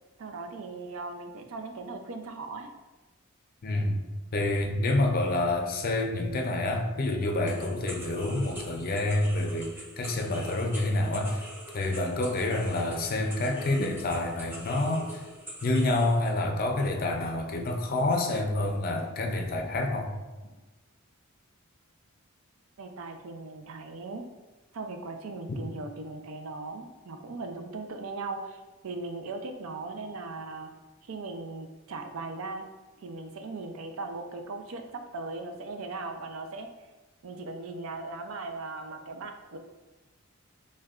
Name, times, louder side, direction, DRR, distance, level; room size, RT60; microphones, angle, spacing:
voice 1, 0.2-2.7 22.8-24.2 24.7-30.7 31.1-32.6 33.0-36.7 37.2-39.6, right 3 dB, 75° right, 5 dB, 0.4 m, -38 dB
voice 2, 3.6-4.0 4.3-11.5 11.7-15.3 15.6-20.1, left 2 dB, 45° left, 3 dB, 0.4 m, -28 dB
sound 1, 7.5-16.2, right 1 dB, 10° right, 0.7 m, -45 dB
6.2 x 2.2 x 2.4 m, 1.2 s
head